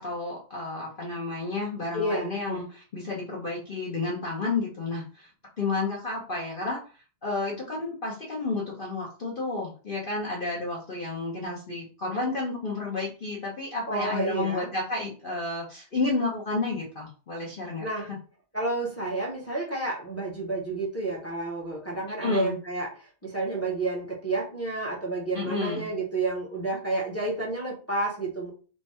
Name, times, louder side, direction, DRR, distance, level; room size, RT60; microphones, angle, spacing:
voice 1, 0.0-5.3 5.6-6.8 7.2-18.2 22.2-22.6 25.3-25.9, left 3 dB, 45° left, -3 dB, 0.7 m, -31 dB
voice 2, 1.9-2.6 13.9-14.7 17.8-18.1 18.5-22.9 23.2-28.5, right 2 dB, 10° left, -3 dB, 0.9 m, -30 dB
3.4 x 2.2 x 4.2 m, 0.37 s
omnidirectional pair, 1.7 m